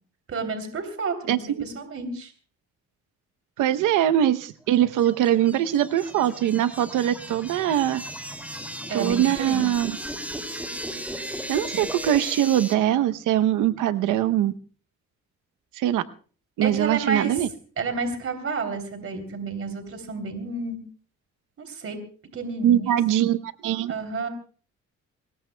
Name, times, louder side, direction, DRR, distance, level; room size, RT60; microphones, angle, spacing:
voice 1, 0.3-2.3 8.9-9.6 16.6-17.4 17.8-20.8 21.6-22.0 22.3-23.0 23.9-24.3, right 4 dB, 50° right, 6 dB, 3.2 m, -30 dB
voice 2, 1.3-1.7 3.6-8.0 8.9-9.9 11.1-14.5 15.8-16.0 16.6-17.5 22.6-23.9, right 11 dB, 90° right, 11 dB, 0.9 m, -22 dB
sound 1, 4.7-12.7, equal, 5° right, 2.5 m, -36 dB
24.5 x 20.0 x 2.2 m, 0.41 s
cardioid pair, 90°, 30 cm